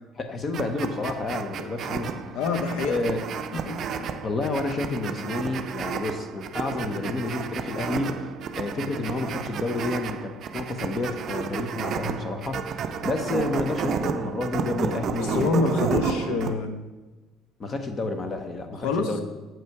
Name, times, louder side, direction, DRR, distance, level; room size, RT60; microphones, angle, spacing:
voice 1, 0.2-2.2 2.9-3.2 4.2-8.2 8.5-15.8 17.6-19.2, left 2 dB, 30° left, 7 dB, 0.8 m, -30 dB
sound 1, 0.5-16.5, right 6 dB, 45° right, 0.5 m, -32 dB
voice 2, 2.3-3.2 3.6-4.1 15.2-16.7 18.8-19.1, left 4 dB, 80° left, 7 dB, 0.9 m, -26 dB
7.5 x 5.5 x 4.7 m, 1.2 s
cardioid pair, 140°, 0 cm